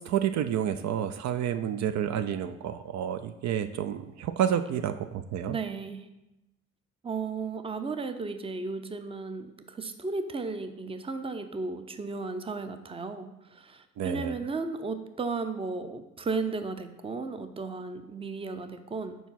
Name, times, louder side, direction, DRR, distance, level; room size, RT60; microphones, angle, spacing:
voice 1, 0.0-5.6 14.0-14.4, right 9 dB, 65° right, 10 dB, 0.4 m, -30 dB
voice 2, 5.5-6.0 7.0-13.3 13.6-19.2, right 4 dB, 20° right, 9 dB, 0.5 m, -34 dB
4.7 x 4.6 x 5.7 m, 0.93 s
cardioid pair, 90°, 30 cm